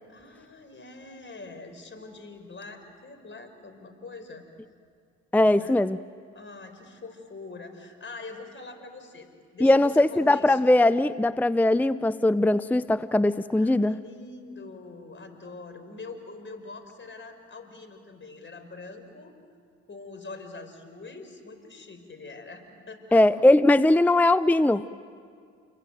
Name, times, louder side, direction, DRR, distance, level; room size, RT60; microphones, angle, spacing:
voice 1, 0.1-4.4 5.4-5.8 6.3-10.7 13.6-19.3 19.9-23.3, left 3 dB, 35° left, 7 dB, 5.1 m, -43 dB
voice 2, 5.3-6.0 9.6-14.0 23.1-24.9, left 1 dB, 5° left, 15 dB, 0.6 m, -20 dB
29.0 x 22.5 x 9.2 m, 2.2 s
hypercardioid pair, 60°, 33 cm